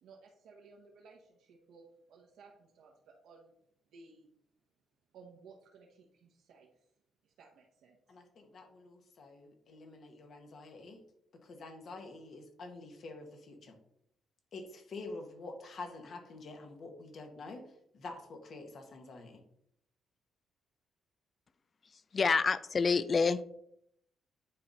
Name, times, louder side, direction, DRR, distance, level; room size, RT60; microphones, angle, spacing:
voice 1, 0.0-3.5 3.9-4.3 5.1-6.9 7.2-8.2, right 4 dB, 80° right, -2 dB, 1.2 m, -58 dB
voice 2, 8.1-11.0 11.4-13.8 14.5-17.6 17.9-19.4, left 3 dB, 55° left, 4 dB, 1.7 m, -47 dB
voice 3, 22.1-23.4, left 5 dB, 40° left, 15 dB, 0.4 m, -27 dB
9.5 x 4.1 x 4.2 m, 0.73 s
cardioid pair, 90°, 0 cm